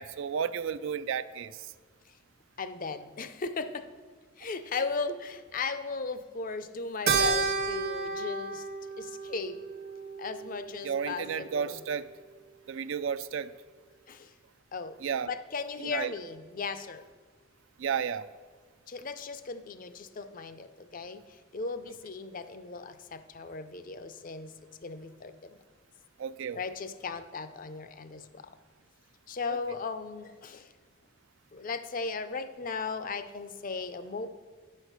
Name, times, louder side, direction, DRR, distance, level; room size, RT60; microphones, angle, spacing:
voice 1, 0.0-1.7 10.8-12.1 12.7-13.5 15.0-15.3 15.8-16.1 17.8-18.2 26.2-26.6 29.5-29.6, right 7 dB, 60° right, 14 dB, 0.4 m, -32 dB
voice 2, 2.6-3.9 4.4-8.7 9.0-9.6 10.2-11.8 14.1-14.3 14.7-15.0 15.3-17.1 18.9-24.5 24.8-25.5 26.5-28.4 29.3-30.7 31.5-34.3, left 4 dB, 40° left, 11 dB, 0.5 m, -37 dB
Keyboard (musical), 7.1-11.7, right 4 dB, 45° right, 0.8 m, -32 dB
9.2 x 6.4 x 6.5 m, 1.5 s
head